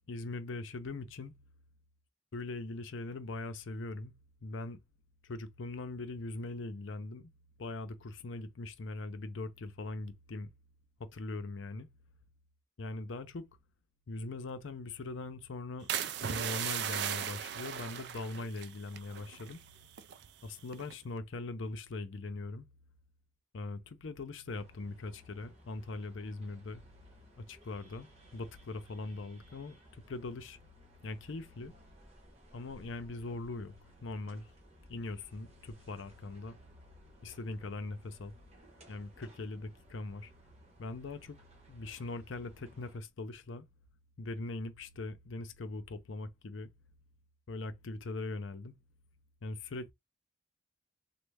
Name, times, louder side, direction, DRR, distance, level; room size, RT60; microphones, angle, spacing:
voice 1, 0.1-1.4 2.3-4.1 4.4-4.8 5.2-7.3 7.6-10.5 11.0-11.9 12.8-13.5 14.1-15.9 16.2-19.6 20.4-22.7 23.5-26.8 27.4-30.6 31.0-31.7 32.5-33.7 34.0-34.5 34.9-36.6 37.2-38.3 38.9-40.3 40.8-41.4 41.7-43.7 44.2-46.7 47.5-48.7 49.4-49.9, left 2 dB, 70° left, 0.6 m, -41 dB
sound 1, 15.9-19.6 19.9-20.3 20.7-21.0, right 9 dB, 60° right, 0.3 m, -37 dB
sound 2, 24.5-43.0, equal, 35° right, 1.1 m, -59 dB
3.2 x 2.1 x 3.3 m
head